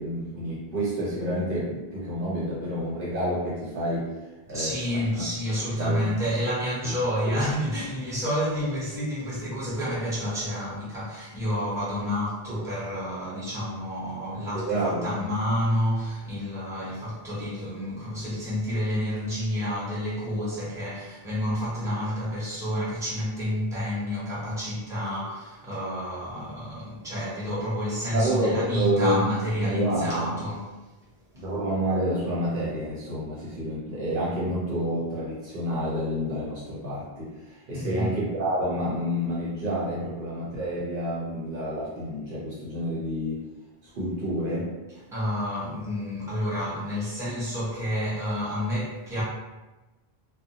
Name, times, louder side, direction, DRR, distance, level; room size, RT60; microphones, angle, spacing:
voice 1, 0.0-4.1 4.5-4.8 5.8-6.2 6.8-7.0 7.3-7.4 12.5-12.6 14.5-15.2 28.1-29.3 29.6-30.4 31.3-43.4 43.9-44.7, equal, 60° right, -7 dB, 0.8 m, -29 dB
voice 2, 4.5-30.7 31.4-31.5 37.7-38.1 45.1-49.2, equal, 5° right, -9 dB, 0.8 m, -29 dB
2.6 x 2.1 x 2.7 m, 1.1 s
omnidirectional pair, 1.0 m